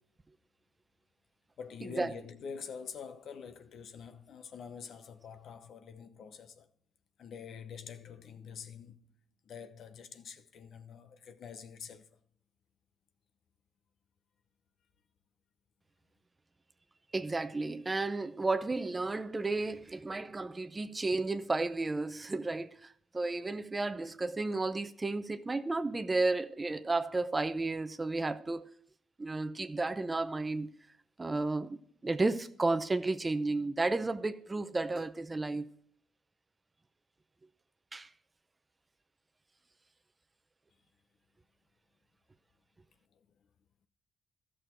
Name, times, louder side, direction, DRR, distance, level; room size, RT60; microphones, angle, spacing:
voice 1, 1.6-6.7 7.2-9.1 9.4-12.1, left 6 dB, 65° left, 0.8 m, -46 dB
voice 2, 17.1-28.7 29.2-30.7 31.2-35.8 37.9-38.1, right 3 dB, 20° right, 0.6 m, -33 dB
13.5 x 6.3 x 4.4 m
cardioid pair, 90°, 0 cm